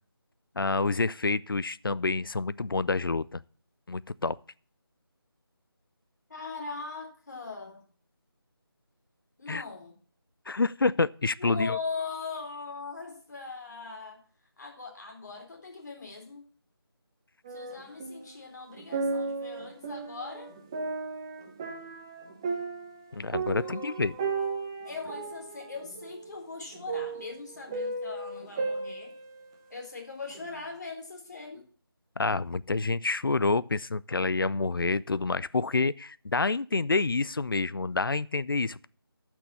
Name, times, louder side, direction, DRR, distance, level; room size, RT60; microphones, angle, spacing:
voice 1, 0.6-3.4 3.9-4.4 9.5-9.6 10.5-11.8 23.1-24.1 32.2-38.9, left 3 dB, 60° left, 0.5 m, -28 dB
voice 2, 6.3-7.8 9.4-9.9 11.4-14.2 14.6-16.4 17.5-20.5 23.6-29.1 29.7-31.6, left 4 dB, 45° left, 3.9 m, -40 dB
sound 1, 17.5-18.4 18.7-29.8 30.3-30.4, right 4 dB, 10° right, 0.7 m, -35 dB
11.5 x 6.1 x 6.9 m
figure-of-eight pair, 165°, 13 cm